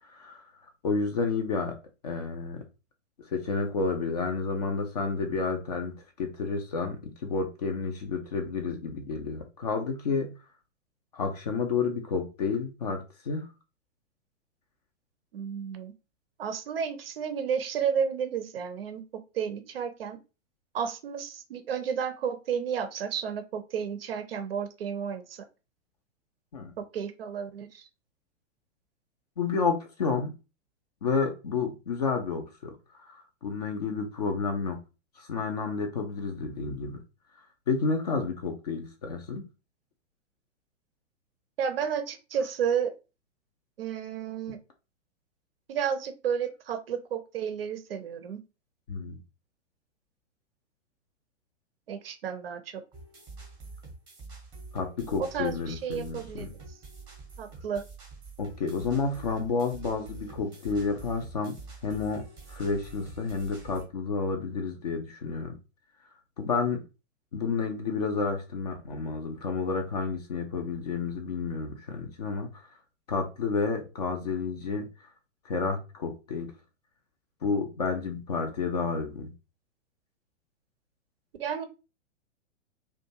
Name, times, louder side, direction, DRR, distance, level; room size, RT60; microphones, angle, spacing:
voice 1, 0.1-0.4 0.8-1.7 2.0-2.6 3.3-10.3 11.1-13.5 26.5-26.7 29.4-30.3 31.0-34.8 35.2-37.0 37.7-39.4 48.9-49.2 54.7-56.5 58.4-61.6 61.8-62.2 62.5-65.6 66.4-66.8 67.3-72.6 73.1-74.9 75.4-76.5 77.4-79.3, left 4 dB, 35° left, 4 dB, 0.4 m, -30 dB
voice 2, 15.3-15.9 16.4-19.0 19.3-20.2 20.7-25.4 26.8-27.9 41.6-42.9 43.8-44.6 45.7-48.4 51.9-52.8 55.2-56.5 57.4-57.8 81.4-81.7, right 7 dB, 50° right, 9 dB, 0.5 m, -32 dB
sound 1, 52.9-63.8, right 3 dB, 10° right, 0.6 m, -47 dB
2.4 x 2.2 x 2.7 m, 0.30 s
figure-of-eight pair, 110°, 38 cm